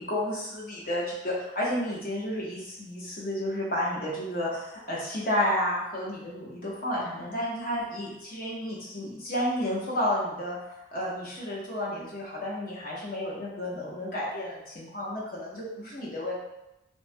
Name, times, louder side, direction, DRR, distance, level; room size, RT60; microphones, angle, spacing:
voice 1, 0.0-10.6 10.9-16.4, left 1 dB, 45° left, -5 dB, 0.8 m, -31 dB
3.1 x 2.1 x 2.6 m, 0.89 s
head